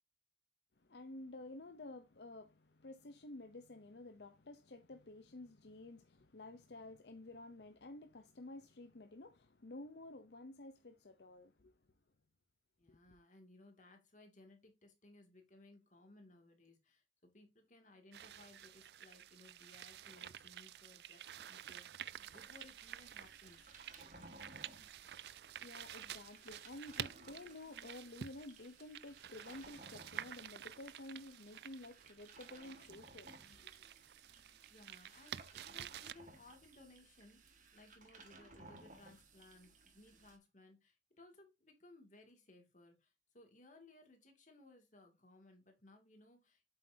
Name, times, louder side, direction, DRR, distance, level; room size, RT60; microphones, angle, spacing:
voice 1, 0.8-11.8 12.9-13.0 25.6-33.9, left 2 dB, 70° left, 0.8 m, -52 dB
voice 2, 12.8-23.7 34.7-46.7, left 2 dB, 45° left, 2.5 m, -62 dB
sound 1, 18.1-36.1, right 10 dB, 65° right, 0.4 m, -51 dB
sound 2, 22.1-40.4, right 2 dB, 45° right, 2.2 m, -60 dB
8.2 x 7.8 x 2.8 m
head